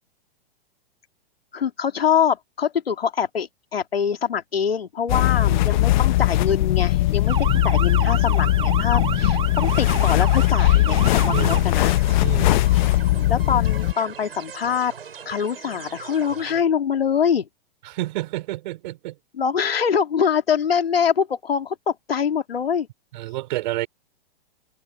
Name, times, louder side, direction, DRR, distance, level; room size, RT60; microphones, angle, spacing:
voice 1, 1.5-11.9 13.3-14.9 15.2-17.5 19.3-22.9, left 7 dB, 80° left, 2.8 m, -24 dB
sound 1, 5.1-13.9, left 16 dB, 50° left, 1.0 m, -19 dB
voice 2, 5.4-5.9 7.5-7.8 9.0-9.3 11.2-11.7 12.2-12.7 17.8-19.2 23.1-23.9, right 17 dB, 55° right, 4.8 m, -30 dB
Motor vehicle (road) / Siren, 7.3-11.6, right 8 dB, 20° right, 2.5 m, -30 dB
sound 2, 11.5-16.6, right 7 dB, 80° right, 6.9 m, -39 dB
hypercardioid pair, 120°, 29 cm